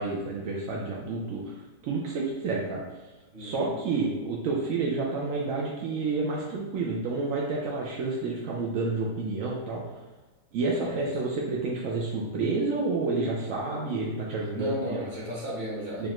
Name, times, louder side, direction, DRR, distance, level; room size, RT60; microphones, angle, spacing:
voice 1, 0.0-1.5 1.8-2.8 3.4-9.8 10.5-15.0 16.0-16.1, right 3 dB, 80° right, -3 dB, 0.7 m, -29 dB
voice 2, 3.3-3.7 10.8-11.0 14.5-16.0, equal, 30° right, -6 dB, 1.1 m, -34 dB
5.0 x 2.4 x 2.9 m, 1.2 s
omnidirectional pair, 2.0 m